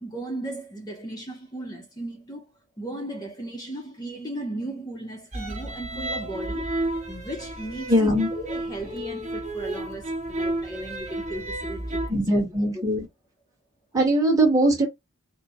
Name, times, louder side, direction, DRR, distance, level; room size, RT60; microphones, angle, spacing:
voice 1, 0.0-2.5 2.8-6.7 7.1-12.2, right 1 dB, 20° left, 0.7 m, -36 dB
sound 1, 5.3-12.1, right 1 dB, 35° right, 1.4 m, -32 dB
voice 2, 7.9-8.3 12.1-13.1 13.9-14.9, right 1 dB, 15° right, 1.3 m, -21 dB
4.3 x 2.1 x 4.2 m
head